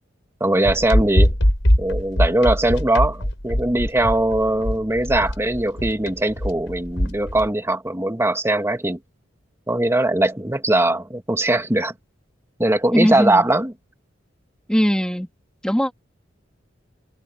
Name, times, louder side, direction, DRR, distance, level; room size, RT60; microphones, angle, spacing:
voice 1, 0.4-1.3 1.8-9.0 9.7-11.9 12.6-13.7, right 1 dB, 15° right, 1.5 m, -20 dB
sound 1, 0.6-7.5, equal, 75° left, 6.0 m, -21 dB
voice 2, 12.9-13.4 14.7-15.3 15.6-15.9, equal, 5° left, 1.8 m, -19 dB
head